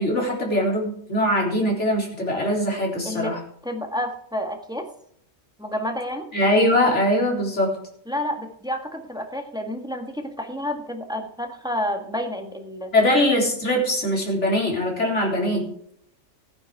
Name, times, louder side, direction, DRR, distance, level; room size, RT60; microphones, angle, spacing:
voice 1, 0.0-3.4 6.3-7.7 12.9-15.6, left 1 dB, 60° left, -2 dB, 4.2 m, -22 dB
voice 2, 3.0-3.4 3.6-4.9 5.6-6.3 8.1-12.9, left 1 dB, 5° right, 3 dB, 1.7 m, -30 dB
15.5 x 9.8 x 4.6 m, 0.68 s
omnidirectional pair, 1.3 m